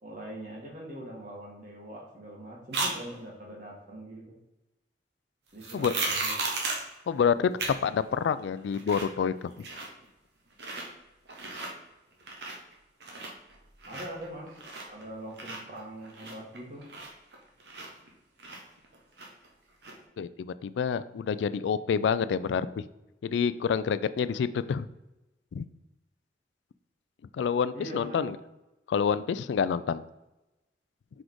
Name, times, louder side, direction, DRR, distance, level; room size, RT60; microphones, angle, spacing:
voice 1, 0.0-4.3 5.5-6.3 13.9-14.5 14.9-16.8 27.7-28.3, right 1 dB, 50° right, -2 dB, 1.7 m, -42 dB
sound 1, 2.7-2.9 5.6-6.9 7.6-7.7 8.1-8.2 8.6-9.2 9.4-10.1 10.5-10.9 11.3-11.7 12.1-12.7 13.0-15.0 15.3-18.1 18.4-19.5 19.8-19.9, right 3 dB, 75° right, 1.2 m, -35 dB
voice 2, 7.1-7.5 7.8-9.7 20.2-22.8 23.2-24.9 25.5-25.7 27.3-28.4 28.9-30.0, left 6 dB, 90° left, 15 dB, 0.3 m, -28 dB
5.0 x 4.2 x 4.6 m, 0.97 s
head